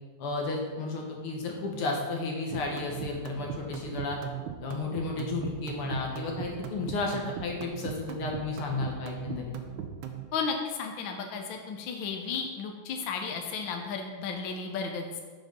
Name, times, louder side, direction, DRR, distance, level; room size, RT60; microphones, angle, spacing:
voice 1, 0.2-4.2 4.6-9.5, left 3 dB, 85° left, 0 dB, 2.2 m, -33 dB
sound 1, 2.5-10.2, right 10 dB, 75° right, 1.4 m, -38 dB
voice 2, 10.3-15.2, left 5 dB, 70° left, 3 dB, 1.4 m, -34 dB
7.3 x 5.3 x 5.3 m, 1.4 s
omnidirectional pair, 2.4 m